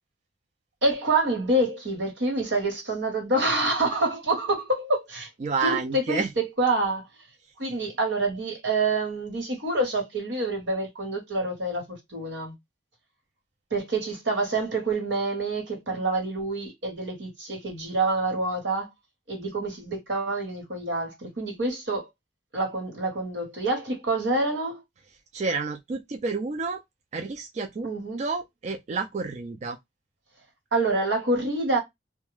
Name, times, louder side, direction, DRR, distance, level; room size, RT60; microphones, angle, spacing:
voice 1, 0.8-5.3 5.6-7.0 7.6-12.5 13.7-18.9 19.3-22.0 22.5-24.8 27.8-28.2 30.7-31.8, right 2 dB, 90° right, 1.2 m, -27 dB
voice 2, 5.4-6.3 25.3-26.8 27.1-27.9 28.2-29.8, right 4 dB, 40° right, 0.3 m, -29 dB
2.2 x 2.1 x 3.1 m
head